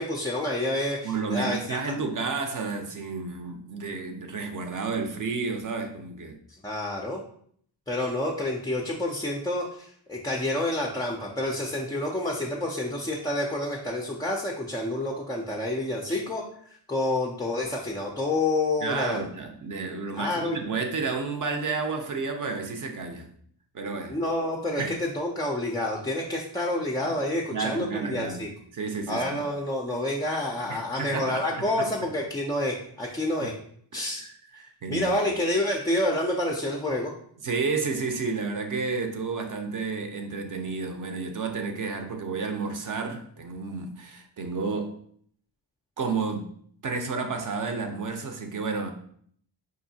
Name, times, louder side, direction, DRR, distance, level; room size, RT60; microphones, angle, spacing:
voice 1, 0.0-1.8 6.6-7.2 7.9-19.2 20.2-20.6 24.1-28.5 29.1-33.5 33.9-34.2 34.9-37.1, left 1 dB, 10° left, -2 dB, 0.3 m, -28 dB
voice 2, 1.0-6.3 16.1-16.2 18.8-23.3 23.7-24.2 24.8-24.9 27.0-27.1 27.5-28.5 28.7-29.5 30.7-31.9 33.4-33.5 33.9-35.2 37.4-45.0 46.0-46.5 46.8-48.9, right 4 dB, 45° right, 5 dB, 0.6 m, -31 dB
4.9 x 2.7 x 2.6 m, 0.62 s
wide cardioid pair, 125°, 46 cm